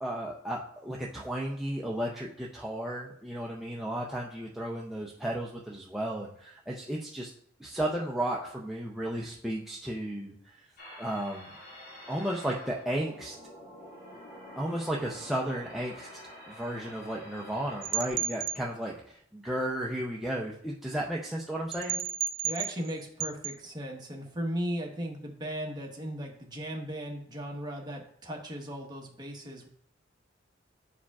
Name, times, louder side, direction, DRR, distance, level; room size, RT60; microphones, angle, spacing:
voice 1, 0.0-7.3 7.6-10.6 11.0-11.6 12.1-13.4 14.6-16.1 16.5-22.0, right 1 dB, ahead, -4 dB, 0.5 m, -34 dB
sound 1, 10.8-18.1, equal, 55° left, 2.1 m, -48 dB
sound 2, 17.8-18.6 21.7-22.9 23.2-23.6, right 9 dB, 65° right, 0.3 m, -32 dB
voice 2, 22.4-29.7, equal, 20° right, 0 dB, 1.0 m, -37 dB
8.3 x 4.9 x 2.3 m, 0.66 s
head